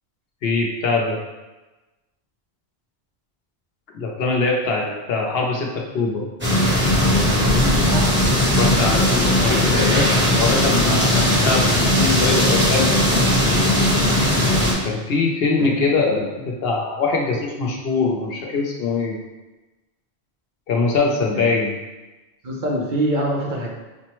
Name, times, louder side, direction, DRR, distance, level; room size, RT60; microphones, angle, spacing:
voice 1, 0.4-1.2 3.9-6.3 8.5-10.1 10.4-13.3 14.8-19.2 20.7-21.8, left 3 dB, 70° left, -1 dB, 0.9 m, -22 dB
sound 1, 6.4-14.7, left 1 dB, 10° right, 1.1 m, -18 dB
voice 2, 22.4-23.7, right 1 dB, 55° right, -3 dB, 0.8 m, -25 dB
6.1 x 2.1 x 3.0 m, 1.1 s
omnidirectional pair, 1.1 m